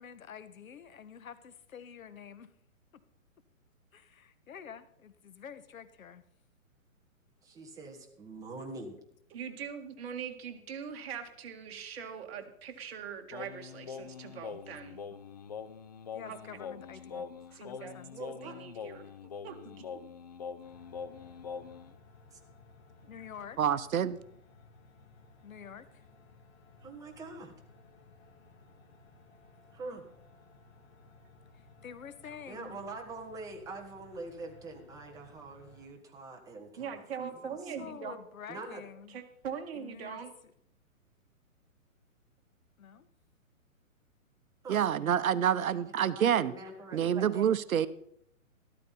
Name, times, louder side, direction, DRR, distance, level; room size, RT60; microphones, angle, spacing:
voice 1, 0.0-2.5 2.9-3.0 3.9-6.2 16.1-18.2 23.1-23.6 25.4-26.0 31.5-32.8 37.4-39.2 39.7-40.2 42.8-43.1, left 8 dB, 75° left, 13 dB, 1.4 m, -48 dB
voice 2, 7.4-9.0 18.1-18.6 26.8-27.5 29.7-30.0 32.5-37.5 37.8-37.9 38.5-38.8 44.6-44.8 45.7-47.5, right 3 dB, 10° right, 1 dB, 1.4 m, -44 dB
voice 3, 9.3-15.0 16.3-16.4 17.1-17.2 17.5-17.9 18.2-19.1 19.4-19.9 36.8-38.2 39.1-40.3, right 7 dB, 45° right, 4 dB, 2.1 m, -42 dB
Singing, 13.3-21.9, left 6 dB, 30° left, 0.4 m, -44 dB
sound 1, 20.6-35.9, left 3 dB, 50° left, 3.0 m, -58 dB
voice 4, 23.6-24.2 44.7-46.6 46.9-47.9, right 9 dB, 75° right, 15 dB, 0.9 m, -27 dB
13.5 x 13.0 x 4.2 m, 0.69 s
hypercardioid pair, 150°, 42 cm